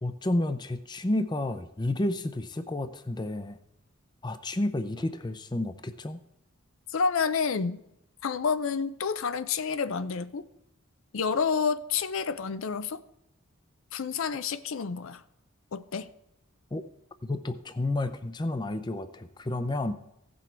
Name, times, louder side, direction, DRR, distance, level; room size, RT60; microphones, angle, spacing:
voice 1, 0.0-3.6 4.2-6.2 16.7-16.8 17.2-19.9, left 1 dB, 20° left, 0.5 m, -31 dB
voice 2, 6.9-7.8 8.2-10.4 11.1-13.0 13.9-15.2 15.7-16.1, left 5 dB, 65° left, 0.5 m, -29 dB
16.5 x 6.2 x 4.4 m
head